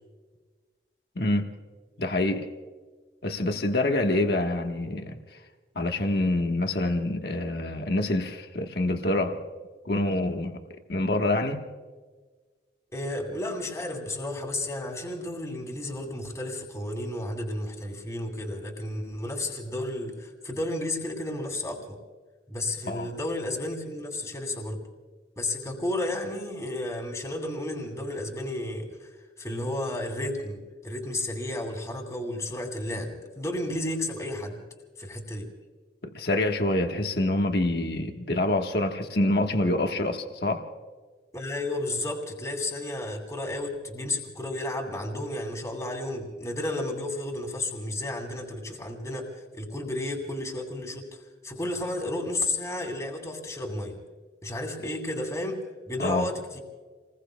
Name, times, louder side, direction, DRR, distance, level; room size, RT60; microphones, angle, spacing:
voice 1, 1.1-1.5 2.0-2.5 3.2-5.2 5.7-9.4 9.8-10.6 10.9-11.6 22.9-23.1 36.0-40.6 56.0-56.3, left 1 dB, 60° left, 1.3 m, -26 dB
voice 2, 12.9-22.0 22.5-24.8 25.4-34.6 35.0-35.5 41.3-54.0 54.4-55.6 55.9-56.6, left 1 dB, 15° left, 2.4 m, -32 dB
30.0 x 20.5 x 2.2 m
head